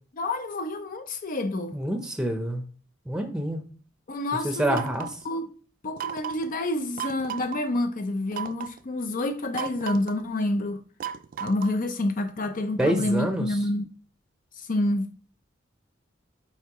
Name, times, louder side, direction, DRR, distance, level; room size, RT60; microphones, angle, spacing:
voice 1, 0.2-1.8 4.1-4.9 5.2-5.5 5.8-10.8 11.4-13.9 14.6-15.1, left 1 dB, 45° left, 0.5 m, -28 dB
voice 2, 1.7-2.6 3.1-3.6 4.4-5.1 12.8-13.6, right 1 dB, 5° right, 0.7 m, -27 dB
sound 1, 4.7-5.2 6.0-6.5 7.0-7.6 8.3-8.8 9.5-10.2 11.0-11.8, right 9 dB, 45° right, 0.3 m, -35 dB
7.9 x 4.5 x 3.0 m
head